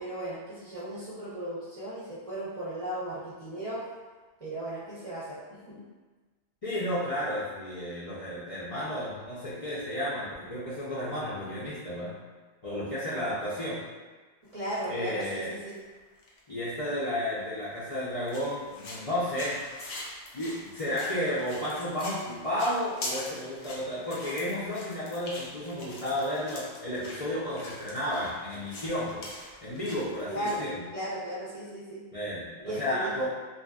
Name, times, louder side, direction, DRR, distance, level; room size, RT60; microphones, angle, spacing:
voice 1, 0.0-3.8 4.4-5.9 14.5-15.8 30.3-30.6 30.9-32.0 32.6-33.3, right 1 dB, 40° right, -10 dB, 0.6 m, -36 dB
voice 2, 6.6-12.1 12.6-13.8 14.9-15.5 16.5-19.6 20.3-29.3 29.6-30.8 32.1-33.3, left 1 dB, 45° left, -11 dB, 0.5 m, -32 dB
sound 1, 14.5-14.9 15.2-16.4 17.0-17.1 17.6-17.7 18.3-30.7, left 2 dB, 75° left, 0.9 m, -43 dB
2.7 x 2.3 x 2.3 m, 1.3 s
omnidirectional pair, 1.2 m